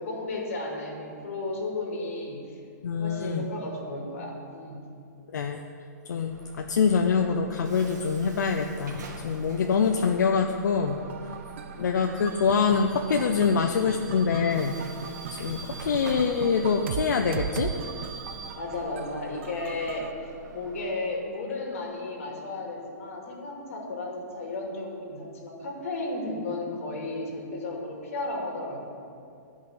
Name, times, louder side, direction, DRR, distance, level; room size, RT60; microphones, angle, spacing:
voice 1, 0.0-2.6 3.0-4.8 9.9-10.2 11.7-12.0 18.5-20.1 20.5-29.0, left 2 dB, 50° left, -1 dB, 2.5 m, -34 dB
voice 2, 2.8-3.5 5.3-5.6 6.1-11.0 11.8-14.8 15.3-17.7, left 5 dB, 75° left, 4 dB, 0.7 m, -25 dB
Bus / Alarm, 6.3-20.9, right 3 dB, 75° right, 1.8 m, -44 dB
sound 1, 10.9-20.1, right 8 dB, 40° right, 0.4 m, -39 dB
12.0 x 5.6 x 9.0 m, 2.4 s
hypercardioid pair, 175°, 10 cm